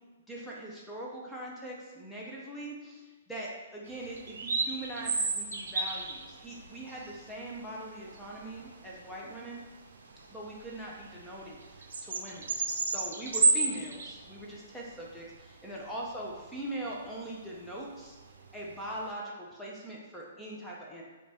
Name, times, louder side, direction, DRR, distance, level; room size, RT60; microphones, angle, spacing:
voice 1, 0.3-3.0 3.3-9.6 10.3-11.6 12.0-12.5 12.9-18.2 18.5-21.0, right 1 dB, 5° left, -5 dB, 0.4 m, -41 dB
sound 1, 3.9-19.1, right 4 dB, 80° right, 0.4 m, -34 dB
5.0 x 2.2 x 2.8 m, 1.3 s
hypercardioid pair, 165°, 0 cm